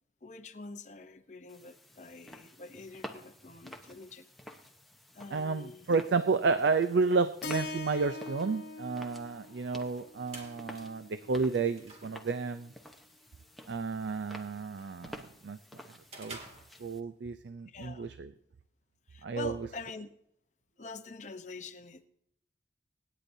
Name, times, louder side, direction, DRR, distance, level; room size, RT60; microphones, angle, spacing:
voice 1, 0.2-4.2 5.1-5.9 17.7-18.1 19.1-20.1 20.8-22.1, left 3 dB, 40° left, 6 dB, 0.8 m, -45 dB
sound 1, 1.5-17.0, equal, ahead, 0.9 m, -51 dB
voice 2, 5.3-12.7 13.7-15.6 16.2-16.4 16.8-18.3 19.2-19.5, right 4 dB, 75° right, 11 dB, 0.5 m, -31 dB
Keyboard (musical), 7.4-11.6, left 3 dB, 70° left, 0.9 m, -43 dB
sound 2, 10.1-17.3, right 2 dB, 35° right, 2.0 m, -53 dB
25.5 x 10.0 x 2.7 m, 0.77 s
head